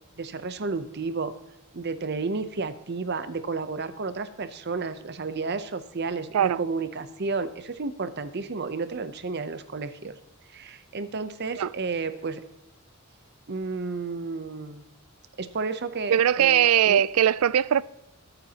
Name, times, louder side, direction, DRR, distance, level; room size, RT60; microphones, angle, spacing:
voice 1, 0.2-1.3 1.7-10.1 10.5-12.4 13.5-14.8 15.4-17.0, right 4 dB, 50° right, 0.7 m, -32 dB
voice 2, 16.1-17.8, right 10 dB, 80° right, 0.4 m, -20 dB
22.5 x 9.0 x 2.9 m
head